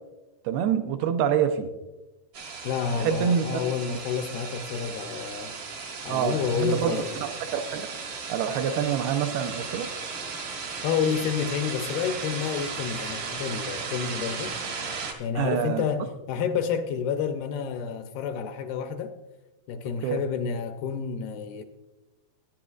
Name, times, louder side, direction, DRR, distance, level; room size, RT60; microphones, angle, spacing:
voice 1, 0.4-1.7 3.0-3.6 6.1-7.9 8.3-9.9 15.4-15.8 20.0-20.2, right 8 dB, 85° right, 2.4 m, -26 dB
sound 1, 2.3-15.1, right 5 dB, 65° right, 1.4 m, -36 dB
voice 2, 2.6-5.6 6.0-7.2 10.8-14.5 15.2-19.2 19.7-21.6, left 7 dB, 80° left, 2.3 m, -29 dB
19.0 x 10.0 x 2.4 m
omnidirectional pair, 4.9 m